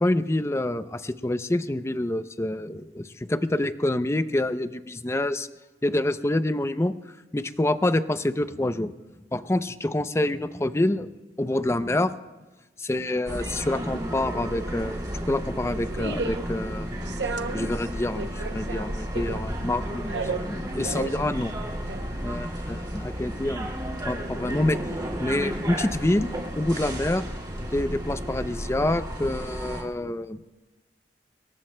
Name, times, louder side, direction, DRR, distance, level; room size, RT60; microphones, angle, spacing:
voice 1, 0.0-5.5 5.8-6.9 7.3-8.9 9.3-11.1 11.4-12.1 12.8-15.0 15.3-16.9 17.5-21.5 22.2-23.7 24.1-24.8 25.2-26.3 26.6-27.2 27.6-30.4, left 1 dB, 15° left, 12 dB, 0.5 m, -27 dB
sound 1, 13.2-29.8, equal, 25° right, 2.4 m, -33 dB
sound 2, 15.1-22.8, right 4 dB, 70° right, 0.7 m, -35 dB
25.5 x 21.5 x 2.2 m, 1.2 s
head